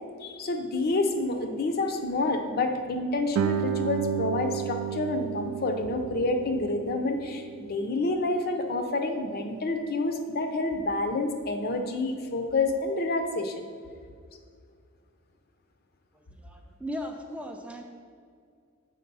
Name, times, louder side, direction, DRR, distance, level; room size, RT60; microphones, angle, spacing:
voice 1, 0.2-13.5, left 2 dB, 45° left, 6 dB, 0.6 m, -28 dB
Guitar, 3.3-8.7, right 9 dB, 80° right, 0.3 m, -33 dB
voice 2, 16.1-17.8, equal, 5° right, 2 dB, 0.4 m, -38 dB
6.6 x 5.0 x 5.3 m, 2.2 s
head